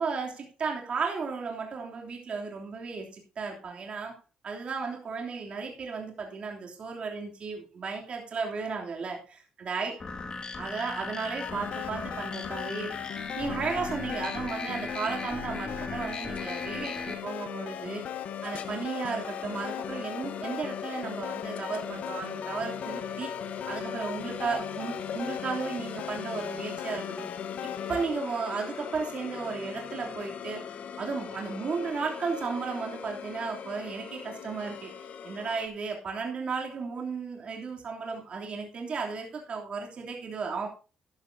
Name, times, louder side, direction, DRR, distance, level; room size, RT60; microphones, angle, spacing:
voice 1, 0.0-4.1 4.4-9.9 10.5-13.0 13.4-18.0 18.4-23.3 23.7-27.3 27.9-40.7, right 5 dB, 50° right, 0 dB, 3.1 m, -34 dB
sound 1, 10.0-17.1, left 3 dB, 35° left, 2.1 m, -37 dB
sound 2, 11.4-28.1, left 11 dB, 85° left, 0.9 m, -39 dB
sound 3, 16.1-35.7, left 7 dB, 65° left, 1.2 m, -40 dB
13.5 x 11.5 x 2.8 m, 0.34 s
cardioid pair, 120°, 2 cm